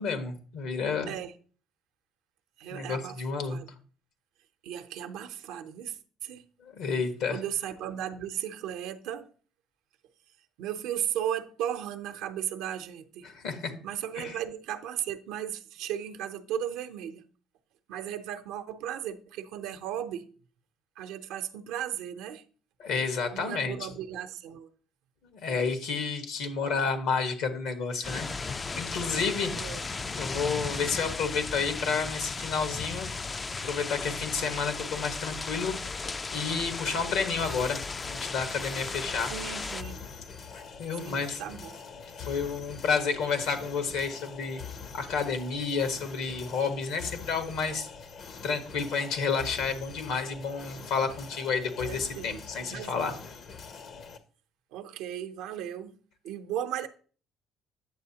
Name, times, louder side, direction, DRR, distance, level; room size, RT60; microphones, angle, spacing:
voice 1, 0.0-1.1 2.7-3.6 6.6-7.4 13.2-13.7 14.2-14.4 22.8-23.9 25.3-29.6 30.1-33.1 33.6-35.8 36.3-39.3 40.5-41.4 42.2-44.6 44.9-47.9 48.4-53.1, left 5 dB, 75° left, 1.3 m, -30 dB
voice 2, 2.6-3.2 3.5-3.7 4.6-6.5 7.3-9.3 10.6-13.3 13.8-17.2 17.9-20.2 21.0-22.4 23.3-24.7 25.5-25.7 29.6-29.8 39.2-40.0 41.0-41.8 48.8-49.0 51.8-53.2 54.7-56.0 56.2-56.9, right 10 dB, 80° right, 0.7 m, -36 dB
sound 1, 28.0-39.8, left 4 dB, 30° left, 0.3 m, -36 dB
sound 2, 37.4-54.2, left 5 dB, 55° left, 0.8 m, -44 dB
9.0 x 7.0 x 2.8 m
supercardioid pair, 80°, 0 cm